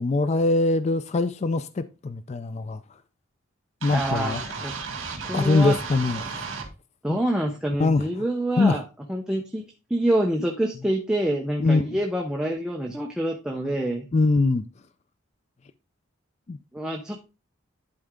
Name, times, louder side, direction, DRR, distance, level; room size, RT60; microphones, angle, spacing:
voice 1, 0.0-2.8 3.8-4.4 5.3-6.4 7.1-7.2 7.8-8.1 8.6-8.8 11.6-11.9 14.1-14.6 16.5-16.6, left 3 dB, 35° left, 0.3 m, -22 dB
sound 1, 3.8-6.7, right 4 dB, 75° right, 2.4 m, -34 dB
voice 2, 3.9-4.7 5.2-5.8 7.0-8.8 9.1-14.1 16.7-17.4, right 1 dB, 5° right, 0.9 m, -27 dB
11.0 x 4.4 x 3.7 m
head